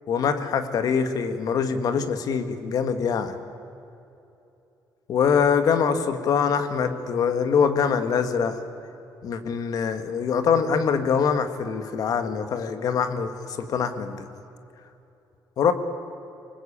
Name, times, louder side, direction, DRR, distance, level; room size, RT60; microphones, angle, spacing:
voice 1, 0.1-3.4 5.1-8.6 9.2-14.3 15.6-15.7, left 6 dB, 55° left, 9 dB, 1.7 m, -24 dB
25.0 x 20.5 x 8.6 m, 2.8 s
cardioid pair, 155°, 8 cm